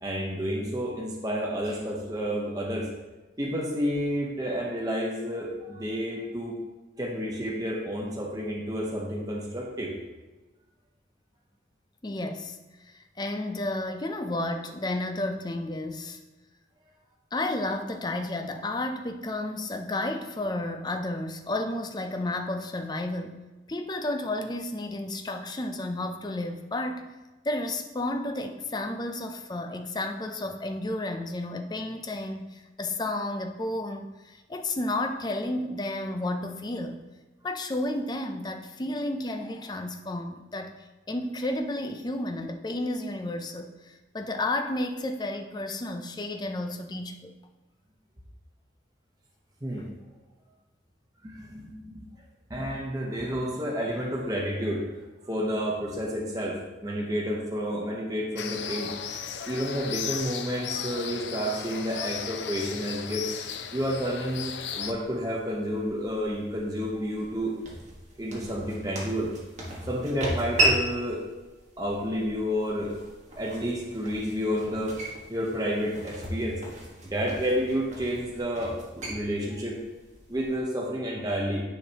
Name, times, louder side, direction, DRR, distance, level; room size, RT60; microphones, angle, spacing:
voice 1, 0.0-2.9 3.4-6.6 7.0-10.0 49.6-49.9 51.2-52.0 52.5-54.8 55.3-58.9 59.5-63.3 63.7-67.5 68.2-69.3 69.9-71.2 71.8-72.9 73.4-74.9 75.3-76.6 77.0-79.8 80.3-81.6, equal, 20° right, -3 dB, 0.9 m, -30 dB
voice 2, 12.0-12.6 12.8-16.2 17.3-23.4 23.7-27.2 27.4-37.0 37.4-40.7 41.1-47.3, left 1 dB, 25° left, 5 dB, 0.5 m, -32 dB
sound 1, 58.4-64.9, left 8 dB, 75° left, 0.5 m, -35 dB
sound 2, 64.5-80.6, right 1 dB, 40° right, 1.5 m, -35 dB
9.8 x 5.1 x 2.9 m, 1.2 s
head